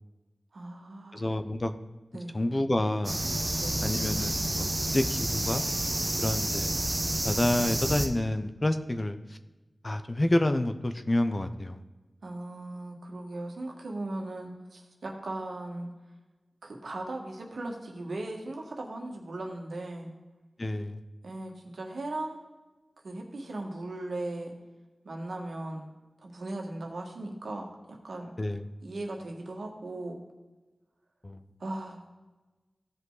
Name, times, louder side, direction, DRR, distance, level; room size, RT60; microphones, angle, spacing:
voice 1, 0.5-1.3 2.1-2.5 3.6-3.9 12.2-15.9 16.6-20.1 21.2-22.4 23.0-24.5 25.0-25.9 26.2-28.3 28.8-30.2 31.6-32.1, right 2 dB, 80° right, 1 dB, 1.8 m, -38 dB
voice 2, 1.1-1.7 2.3-3.2 3.8-4.7 4.9-5.6 6.2-6.7 7.2-9.2 9.8-11.8 20.6-21.0 28.4-28.6 31.2-31.4, left 1 dB, 35° left, 9 dB, 0.8 m, -28 dB
sound 1, 3.0-8.1, right 1 dB, 30° right, 1.1 m, -29 dB
15.5 x 5.3 x 4.0 m, 1.2 s
wide cardioid pair, 60°, 0 cm